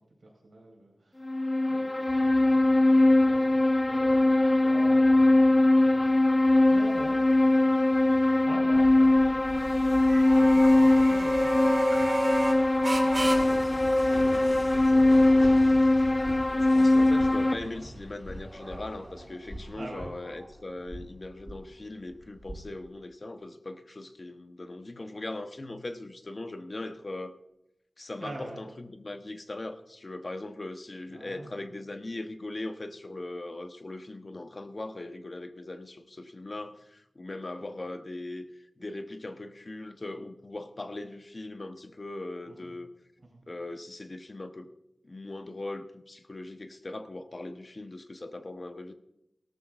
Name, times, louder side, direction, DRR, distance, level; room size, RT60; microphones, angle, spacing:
voice 1, 0.2-3.6 3.8-6.3 6.6-7.2 7.4-9.7 10.3-13.1 13.4-13.6 14.7-15.9 16.2-17.9 19.7-20.1 28.2-28.6 31.1-31.8 37.6-37.7 42.5-42.7 43.2-43.4, right 2 dB, 75° right, -2 dB, 4.9 m, -47 dB
sound 1, 1.2-17.5, left 2 dB, 30° left, 0.7 m, -21 dB
sound 2, 2.1-19.3, right 1 dB, 55° right, 2.8 m, -37 dB
sound 3, 8.7-22.9, equal, 5° right, 4.0 m, -43 dB
voice 2, 16.5-27.3 28.0-38.5 38.8-42.9 43.5-44.7 45.0-48.9, left 2 dB, 50° left, 7 dB, 1.0 m, -40 dB
17.5 x 13.0 x 2.6 m, 0.84 s
wide cardioid pair, 50°, 0 cm